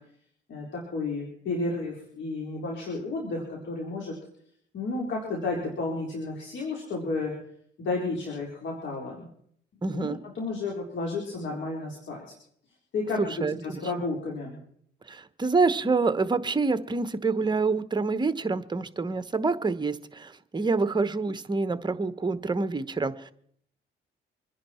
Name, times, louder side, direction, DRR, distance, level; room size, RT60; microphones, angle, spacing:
voice 1, 0.5-4.2 4.7-7.3 7.8-9.3 9.9-12.2 12.9-14.6, left 3 dB, 65° left, -2 dB, 4.0 m, -32 dB
voice 2, 9.8-10.2 13.2-13.8 15.1-23.3, right 4 dB, 20° right, 12 dB, 1.1 m, -27 dB
25.5 x 10.5 x 4.4 m, 0.66 s
cardioid pair, 90°, 20 cm